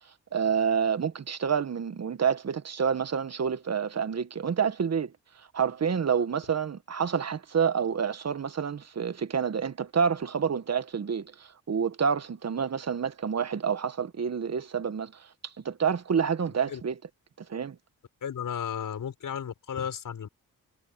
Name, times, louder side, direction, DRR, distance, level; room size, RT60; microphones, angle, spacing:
voice 1, 0.3-17.0 17.4-17.8, right 6 dB, 50° right, 1.5 m, -28 dB
voice 2, 18.2-20.3, left 8 dB, 70° left, 5.6 m, -34 dB
cardioid pair, 60°, 34 cm